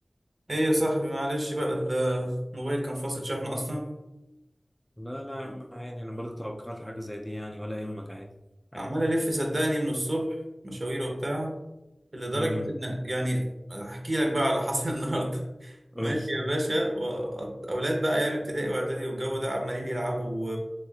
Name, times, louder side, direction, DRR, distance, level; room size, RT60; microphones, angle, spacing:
voice 1, 0.5-3.9 5.4-5.6 8.8-10.3 10.6-11.5 12.1-13.4 13.7-20.6, equal, 50° right, 1 dB, 0.8 m, -29 dB
voice 2, 5.0-8.3 8.7-8.9 12.3-12.7 15.9-16.3, equal, 5° left, 2 dB, 0.3 m, -36 dB
4.1 x 3.1 x 2.4 m, 0.96 s
wide cardioid pair, 55°, 0 cm